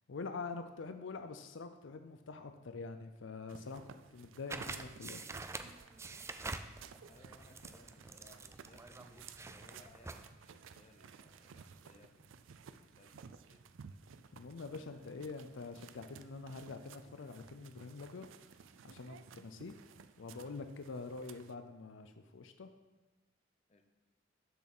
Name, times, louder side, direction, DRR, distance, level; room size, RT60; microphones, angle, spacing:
voice 1, 0.1-3.8 4.1-5.2 14.3-18.3 18.8-19.7 20.2-22.7, left 4 dB, 80° left, 8 dB, 0.5 m, -45 dB
sound 1, 3.5-21.5, right 6 dB, 90° right, 0.4 m, -57 dB
sound 2, 4.2-4.4 4.7-4.9 5.2-5.8 6.1-7.3 7.5-8.2 8.4-9.1 9.4-9.6 9.8-10.5 10.8-11.9 12.2-13.3 13.6-14.8 15.0-15.5, right 1 dB, 65° right, 1.0 m, -67 dB
sound 3, 4.5-10.3, right 3 dB, 15° right, 0.3 m, -46 dB
voice 2, 7.1-13.7 23.7-23.8, left 2 dB, 35° left, 5 dB, 0.8 m, -64 dB
6.9 x 6.3 x 6.0 m, 1.2 s
head